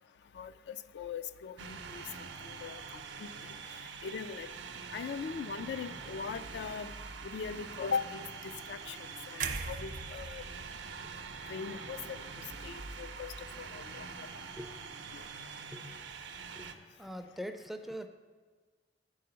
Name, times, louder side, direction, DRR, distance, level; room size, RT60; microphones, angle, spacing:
voice 1, 0.3-2.8 3.2-3.3 4.0-4.5 4.9-6.9 7.2-10.4 11.5-12.2 12.6-14.3 15.1-15.2, left 6 dB, 70° left, 12 dB, 0.3 m, -40 dB
sound 1, 1.6-16.7, right 5 dB, 85° right, 0.6 m, -45 dB
sound 2, 9.4-13.4 13.8-14.0, right 5 dB, 50° right, 0.6 m, -42 dB
voice 2, 17.0-18.1, equal, ahead, 7 dB, 0.4 m, -43 dB
9.3 x 4.8 x 6.9 m, 1.5 s
head